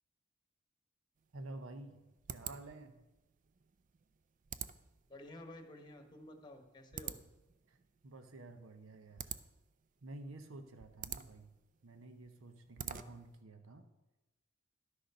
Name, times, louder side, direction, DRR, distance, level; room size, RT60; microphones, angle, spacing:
sound 1, 1.2-13.4, right 8 dB, 40° right, 0.4 m, -49 dB
voice 1, 1.3-3.0 7.7-7.8 8.0-9.4 10.0-11.5 11.8-13.9, right 2 dB, 90° right, 7 dB, 0.9 m, -51 dB
voice 2, 5.1-7.2 12.9-13.2, left 1 dB, 20° left, 6 dB, 1.2 m, -52 dB
11.5 x 6.5 x 5.4 m, 1.0 s
head